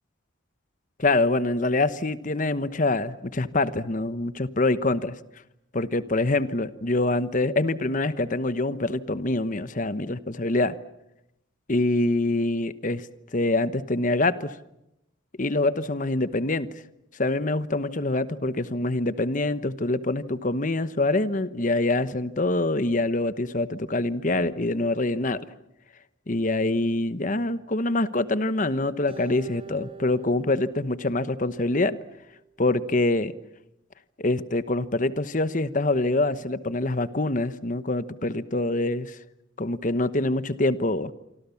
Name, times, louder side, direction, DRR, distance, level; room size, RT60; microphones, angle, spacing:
voice 1, 1.0-5.2 5.7-10.7 11.7-13.1 13.3-14.6 15.4-16.7 17.1-25.4 26.3-32.0 32.6-33.3 34.2-39.2 39.6-41.1, left 2 dB, 40° left, 13 dB, 1.0 m, -25 dB
Acoustic guitar, 29.1-32.4, right 5 dB, 30° right, 4.3 m, -45 dB
27.0 x 25.5 x 7.1 m, 0.85 s
head